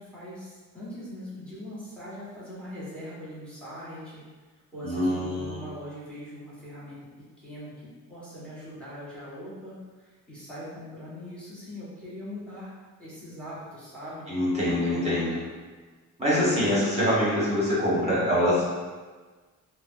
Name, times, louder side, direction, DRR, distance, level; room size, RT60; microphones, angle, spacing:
voice 1, 0.0-4.2 4.7-7.0 7.4-7.7 8.1-14.3 14.8-15.2, equal, 5° left, -9 dB, 1.3 m, -41 dB
voice 2, 4.8-5.6 14.3-15.4 16.2-18.7, left 1 dB, 20° right, -9 dB, 1.3 m, -24 dB
3.2 x 2.2 x 2.6 m, 1.4 s
cardioid pair, 95°, 34 cm